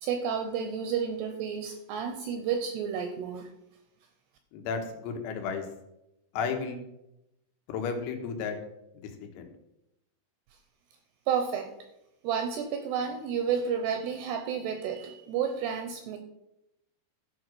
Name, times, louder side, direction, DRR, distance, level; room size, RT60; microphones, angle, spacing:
voice 1, 0.0-3.5 11.3-11.7 12.2-16.2, right 7 dB, 80° right, 6 dB, 2.4 m, -31 dB
voice 2, 4.5-5.7 6.3-6.8 7.7-8.6 9.2-9.5, left 5 dB, 85° left, 4 dB, 3.7 m, -33 dB
13.0 x 4.9 x 6.0 m, 0.86 s
omnidirectional pair, 5.5 m